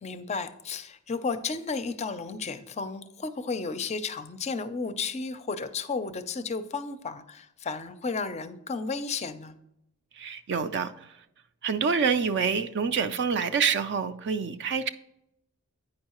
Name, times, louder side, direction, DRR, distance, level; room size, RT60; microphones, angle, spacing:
voice 1, 0.0-9.6, left 4 dB, 30° left, 0.4 m, -33 dB
voice 2, 10.2-10.9 11.6-14.9, right 6 dB, 50° right, 0.4 m, -27 dB
8.7 x 5.5 x 2.9 m
head